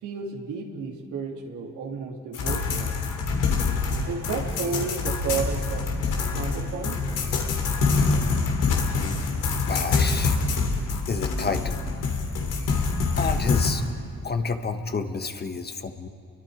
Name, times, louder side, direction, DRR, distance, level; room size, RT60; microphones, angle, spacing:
voice 1, 0.0-3.0 4.1-5.9 6.3-7.0, right 5 dB, 85° right, 0 dB, 3.2 m, -32 dB
sound 1, 2.3-13.7, left 4 dB, 90° left, 3.4 m, -25 dB
voice 2, 9.7-10.4 11.1-11.8 13.2-13.8 14.2-16.1, left 4 dB, 35° left, 8 dB, 1.5 m, -29 dB
30.0 x 23.0 x 5.2 m, 2.8 s
cardioid pair, 90°, 30 cm